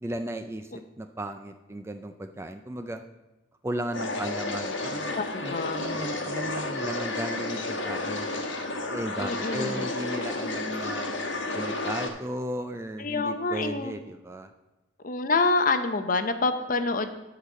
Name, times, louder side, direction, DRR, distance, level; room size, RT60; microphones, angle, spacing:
voice 1, 0.0-3.0 3.6-8.3 8.9-11.1 11.5-14.5, right 1 dB, 15° right, 7 dB, 0.3 m, -35 dB
sound 1, 3.9-12.1, left 2 dB, 65° left, 1.1 m, -31 dB
voice 2, 5.1-5.9 9.2-9.9 13.0-13.9 15.0-17.2, left 3 dB, 40° left, 9 dB, 0.6 m, -27 dB
11.0 x 4.0 x 6.5 m, 1.0 s
head